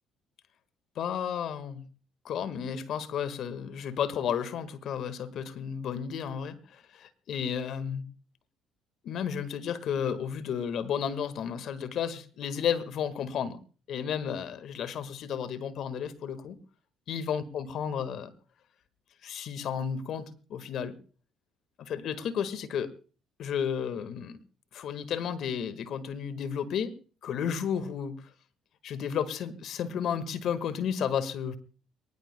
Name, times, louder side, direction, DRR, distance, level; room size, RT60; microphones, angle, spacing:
voice 1, 0.9-1.8 2.2-8.0 9.0-13.6 13.9-16.6 17.1-18.3 19.2-21.0 21.8-22.9 23.4-24.4 24.7-26.9 27.2-28.3 28.8-31.6, left 8 dB, 65° left, 12 dB, 1.6 m, -32 dB
23.0 x 19.5 x 2.2 m, 0.38 s
supercardioid pair, 70°, 0 cm